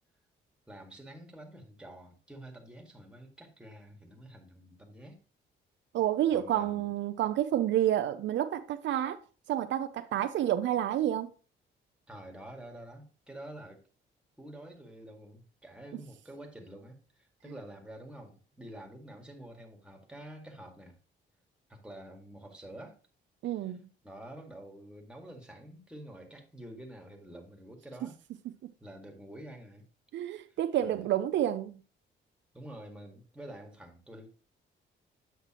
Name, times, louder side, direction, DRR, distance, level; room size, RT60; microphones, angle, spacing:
voice 1, 0.7-5.2 6.3-6.9 12.1-13.8 14.4-21.0 21.7-23.0 23.7-23.8 24.0-28.2 28.8-29.8 30.5-31.1 32.5-34.3, right 1 dB, 5° right, 1.9 m, -48 dB
voice 2, 5.9-9.2 9.5-11.3 23.4-23.9 30.1-31.8, right 11 dB, 70° right, 0.5 m, -29 dB
8.2 x 5.8 x 2.9 m
cardioid pair, 90°, 20 cm